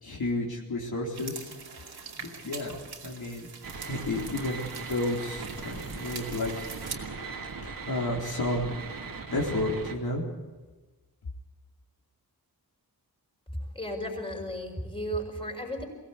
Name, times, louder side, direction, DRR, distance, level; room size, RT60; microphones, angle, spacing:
voice 1, 0.0-1.5 1.7-3.5 3.9-6.7 7.6-8.8 9.3-10.2, left 1 dB, 70° left, -2 dB, 4.0 m, -32 dB
sound 1, 1.1-6.9, right 5 dB, 80° right, 2.7 m, -43 dB
sound 2, 3.6-9.9, right 4 dB, 60° right, 2.4 m, -39 dB
voice 2, 13.7-15.8, equal, 15° left, 0 dB, 5.6 m, -34 dB
23.0 x 17.0 x 8.4 m, 1.2 s
wide cardioid pair, 95°, 38 cm